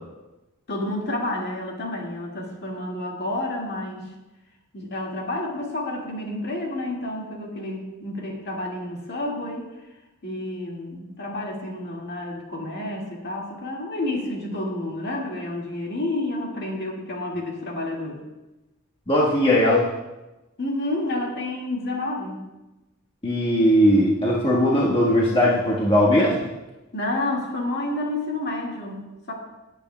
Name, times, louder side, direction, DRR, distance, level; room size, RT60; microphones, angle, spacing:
voice 1, 0.7-4.1 4.7-9.7 10.2-18.2 20.6-22.5 26.9-29.3, left 1 dB, 50° left, -1 dB, 1.9 m, -30 dB
voice 2, 19.1-19.9 23.2-26.5, equal, 25° left, -5 dB, 1.3 m, -19 dB
16.5 x 8.2 x 2.2 m, 1.0 s
head